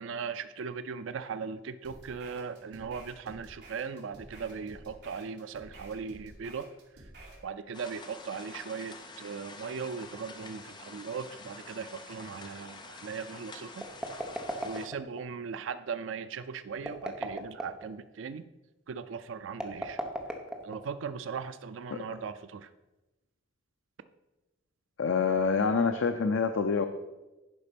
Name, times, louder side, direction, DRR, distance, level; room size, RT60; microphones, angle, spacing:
voice 1, 0.0-6.7 7.4-13.8 14.6-18.4 18.9-20.0 20.6-22.7, right 6 dB, 85° right, 12 dB, 0.4 m, -38 dB
sound 1, 1.8-7.4, right 1 dB, 60° right, 2.2 m, -51 dB
sound 2, 7.7-14.9, left 3 dB, 25° left, 0.7 m, -47 dB
sound 3, 13.7-15.2 16.8-17.9 19.5-21.1, right 1 dB, 5° right, 0.9 m, -36 dB
voice 2, 25.0-26.9, left 5 dB, 85° left, 7 dB, 0.6 m, -27 dB
11.0 x 5.0 x 5.2 m, 1.1 s
head